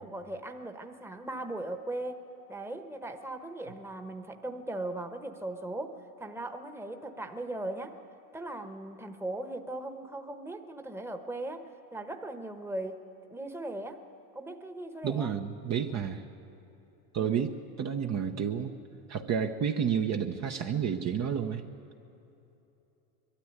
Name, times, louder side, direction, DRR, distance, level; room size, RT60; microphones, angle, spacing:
voice 1, 0.0-2.2 2.5-8.0 8.3-14.0 14.3-15.3 17.2-17.5, right 1 dB, 5° right, 6 dB, 1.1 m, -38 dB
voice 2, 15.0-16.2 17.1-18.7 19.1-21.6, right 7 dB, 35° right, 4 dB, 0.9 m, -30 dB
21.5 x 13.0 x 9.5 m, 3.0 s
supercardioid pair, 105°, 44 cm